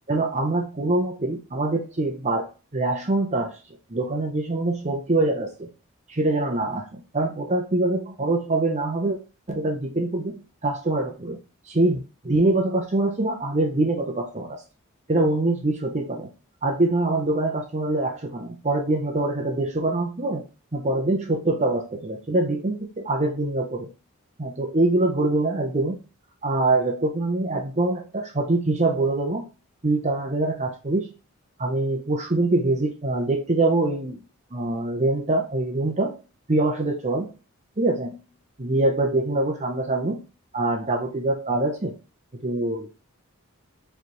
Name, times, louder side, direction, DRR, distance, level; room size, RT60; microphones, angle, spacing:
voice 1, 0.1-3.6 3.9-5.7 6.1-9.2 9.5-11.4 11.7-14.6 15.1-16.3 16.6-20.4 20.7-23.9 24.4-26.0 26.4-29.4 29.8-31.1 31.6-34.2 34.5-36.2 36.5-37.4 37.8-38.2 38.6-40.2 40.5-42.0 42.3-42.9, right 2 dB, 30° right, 2 dB, 0.7 m, -24 dB
4.9 x 3.3 x 3.0 m, 0.32 s
head